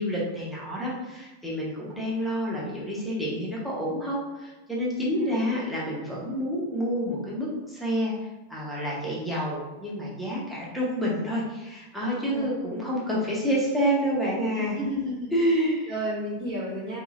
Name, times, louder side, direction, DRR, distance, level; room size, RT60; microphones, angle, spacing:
voice 1, 0.0-8.1 8.5-14.8 15.3-15.9, equal, ahead, -6 dB, 0.9 m, -28 dB
voice 2, 5.1-5.6 12.3-12.5 14.5-15.4 15.9-17.0, equal, 40° right, -10 dB, 1.5 m, -32 dB
2.9 x 2.8 x 2.5 m, 1.1 s
figure-of-eight pair, 90°, 0 cm